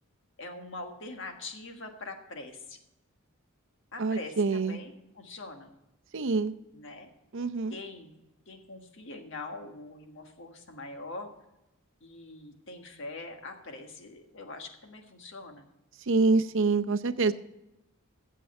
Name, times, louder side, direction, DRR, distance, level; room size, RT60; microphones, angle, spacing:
voice 1, 0.4-2.8 3.9-5.7 6.7-7.1 7.7-8.1 8.4-11.3 12.0-15.6, left 2 dB, 60° left, 4 dB, 1.6 m, -43 dB
voice 2, 4.0-4.8 6.1-6.5 7.3-7.7 16.1-17.3, right 3 dB, 60° right, 9 dB, 0.6 m, -26 dB
15.0 x 7.5 x 4.3 m, 0.94 s
head